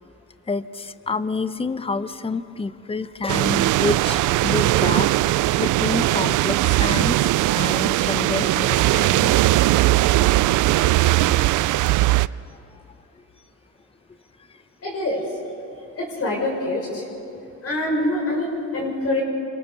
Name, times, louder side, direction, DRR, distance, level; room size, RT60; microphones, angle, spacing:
voice 1, 0.5-7.2 7.5-9.4 10.0-10.2 11.0-11.1, left 3 dB, 20° left, 13 dB, 0.9 m, -28 dB
sound 1, 3.3-12.3, right 16 dB, 80° right, 0.5 m, -19 dB
voice 2, 14.8-15.2 16.0-17.1 17.6-19.2, left 1 dB, 50° left, -1 dB, 6.4 m, -25 dB
29.5 x 26.0 x 6.7 m, 2.7 s
cardioid pair, 90°, 30 cm